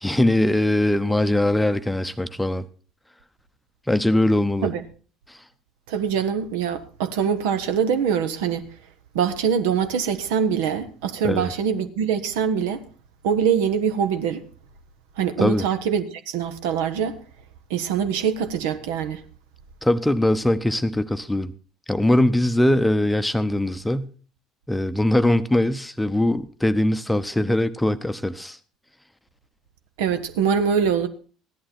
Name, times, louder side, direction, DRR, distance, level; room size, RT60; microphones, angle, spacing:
voice 1, 0.0-2.6 3.9-4.7 5.3-5.4 11.2-11.5 15.4-15.7 19.8-21.5 21.9-24.1 24.7-28.6, left 1 dB, 5° left, 0.8 m, -21 dB
voice 2, 5.9-8.6 9.1-12.8 13.2-14.4 15.2-17.2 17.7-19.2 30.0-31.1, right 7 dB, 65° right, 1.0 m, -23 dB
15.5 x 11.0 x 4.3 m
figure-of-eight pair, 60°, 0 cm